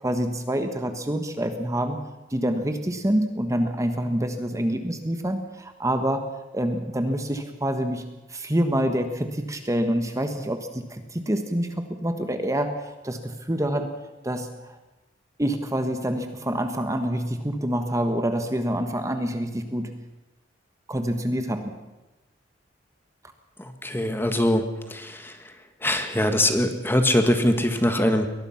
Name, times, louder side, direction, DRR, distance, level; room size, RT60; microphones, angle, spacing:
voice 1, 0.0-2.0 2.3-6.3 6.5-13.9 14.2-14.8 15.4-19.9 20.9-21.8, right 1 dB, 15° right, 7 dB, 1.4 m, -27 dB
voice 2, 23.6-24.6 24.9-25.3 25.8-28.3, left 1 dB, 10° left, 7 dB, 1.7 m, -22 dB
23.0 x 19.5 x 5.9 m, 1.1 s
head